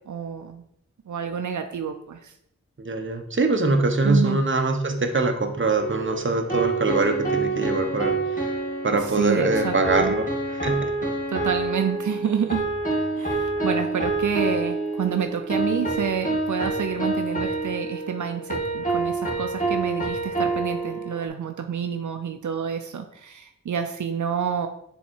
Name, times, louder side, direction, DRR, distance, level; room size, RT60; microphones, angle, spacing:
voice 1, 0.1-0.6 1.1-2.3 4.0-4.4 9.0-10.1 11.3-12.7 13.2-24.7, right 7 dB, 80° right, 7 dB, 0.5 m, -28 dB
voice 2, 2.8-8.5 8.8-10.9, right 3 dB, 40° right, 5 dB, 0.9 m, -23 dB
sound 1, 5.8-21.3, right 3 dB, 25° left, 2.0 m, -27 dB
7.1 x 3.7 x 4.5 m, 0.73 s
wide cardioid pair, 60°, 29 cm